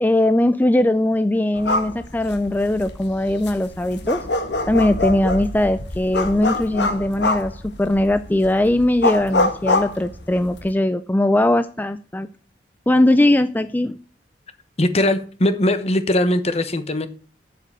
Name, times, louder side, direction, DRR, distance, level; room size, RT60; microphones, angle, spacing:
voice 1, 0.0-4.2 4.7-7.5 7.8-12.3 12.9-14.0, left 1 dB, 10° left, 0.4 m, -19 dB
sound 1, 1.6-10.7, left 2 dB, 75° left, 1.5 m, -25 dB
voice 2, 14.8-17.1, left 1 dB, 35° left, 1.1 m, -20 dB
7.7 x 7.5 x 8.1 m
head